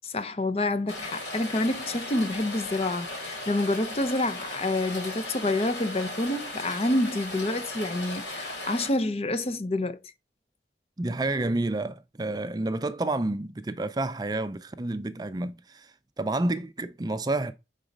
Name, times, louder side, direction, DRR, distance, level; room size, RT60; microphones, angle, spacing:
voice 1, 0.0-10.0, left 2 dB, 35° left, 0.6 m, -28 dB
Rain, 0.9-8.9, left 1 dB, 80° left, 3.2 m, -37 dB
voice 2, 11.0-17.5, right 2 dB, 20° right, 0.4 m, -29 dB
6.2 x 4.0 x 5.2 m
head